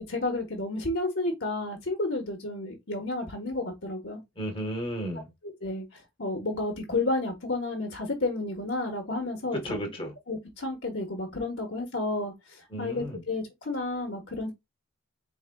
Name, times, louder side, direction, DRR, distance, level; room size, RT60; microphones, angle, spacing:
voice 1, 0.1-4.2 5.4-5.9 6.2-9.8 10.3-12.3 12.8-14.5, left 2 dB, 55° left, 1.1 m, -31 dB
voice 2, 4.4-5.3 9.5-10.1 12.7-13.2, equal, 25° left, 1.2 m, -33 dB
4.7 x 3.6 x 2.3 m
head